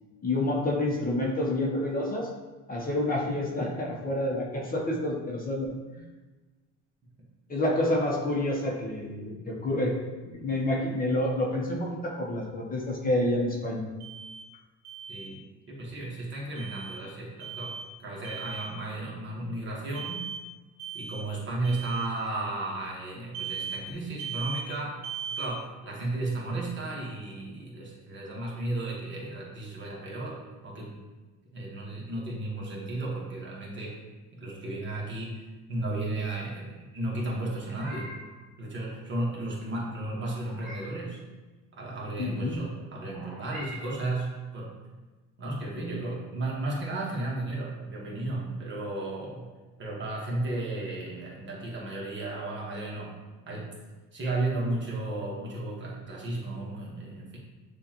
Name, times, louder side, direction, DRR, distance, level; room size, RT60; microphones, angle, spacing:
voice 1, 0.2-2.3 2.7-6.0 7.5-9.9 10.2-13.8 42.2-42.6, left 1 dB, 30° left, -3 dB, 0.9 m, -28 dB
Alarm, 14.0-14.5 14.8-15.3 16.6-17.0 17.4-17.9 18.2-18.7 19.9-20.4 20.8-21.3 21.6-22.1 23.3-23.8 24.2-24.7 25.0-25.5, right 7 dB, 65° right, 0.7 m, -37 dB
voice 2, 15.1-20.2 20.9-25.0 25.3-30.9 31.5-34.0 34.3-38.1 38.6-41.2 41.7-44.7 45.4-49.5 49.8-53.2 53.5-53.7 54.1-57.4, right 2 dB, 35° right, -3 dB, 1.3 m, -34 dB
Meow, 37.5-38.4 40.1-41.0 43.1-44.2, equal, ahead, 1.3 m, -45 dB
6.6 x 2.5 x 2.9 m, 1.2 s
cardioid pair, 105°, 32 cm